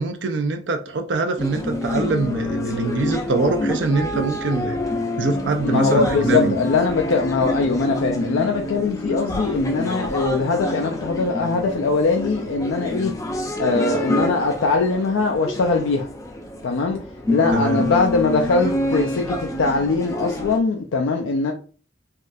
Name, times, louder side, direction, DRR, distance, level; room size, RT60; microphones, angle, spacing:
voice 1, 0.0-4.8 5.2-6.5 17.5-17.8, right 3 dB, 70° right, 0.5 m, -24 dB
sound 1, 1.4-20.6, left 1 dB, 15° left, 0.4 m, -27 dB
voice 2, 5.6-13.1 13.6-16.1 16.6-17.0 17.3-21.5, left 4 dB, 85° left, 0.4 m, -21 dB
3.5 x 2.3 x 2.6 m
head